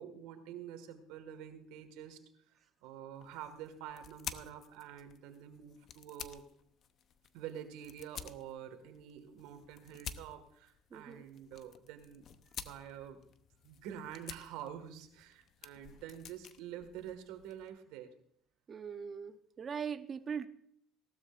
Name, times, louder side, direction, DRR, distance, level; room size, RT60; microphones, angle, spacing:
voice 1, 0.0-2.2 2.8-6.4 7.3-12.3 12.6-13.2 13.6-18.1, right 9 dB, 85° right, 7 dB, 1.8 m, -47 dB
sound 1, 3.1-17.7, left 8 dB, 50° left, 0.8 m, -51 dB
voice 2, 10.9-11.2 18.7-20.5, right 6 dB, 35° right, 9 dB, 0.9 m, -40 dB
18.0 x 12.5 x 2.6 m, 0.68 s
cardioid pair, 110°, 0 cm